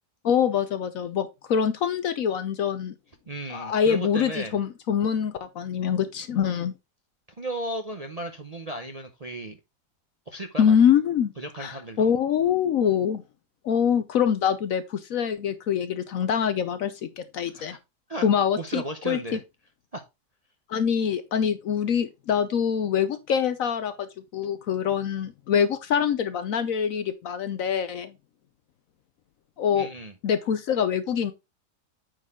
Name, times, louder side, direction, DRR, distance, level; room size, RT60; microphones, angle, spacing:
voice 1, 0.2-2.9 3.5-6.7 10.6-11.3 11.6-13.2 13.6-17.8 18.2-19.4 20.7-24.1 24.3-28.1 29.6-29.9 30.2-31.3, left 8 dB, 65° left, 0.9 m, -24 dB
voice 2, 3.3-4.6 7.4-9.6 10.3-10.8 11.4-12.1 17.5-17.8 18.1-18.3 18.6-19.4 19.9-20.0 29.7-30.1, right 1 dB, 35° right, 0.6 m, -35 dB
9.0 x 4.4 x 3.6 m
omnidirectional pair, 1.8 m